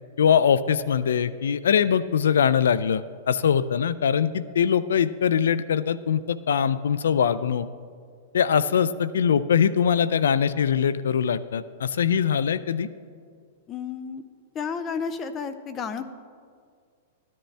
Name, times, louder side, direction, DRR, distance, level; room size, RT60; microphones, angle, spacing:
voice 1, 0.2-7.7 8.3-12.9, left 7 dB, 85° left, 16 dB, 0.4 m, -22 dB
voice 2, 13.7-14.3 14.5-16.1, left 6 dB, 25° left, 11 dB, 0.6 m, -32 dB
14.0 x 10.5 x 3.4 m, 2.1 s
hypercardioid pair, 140°, 0 cm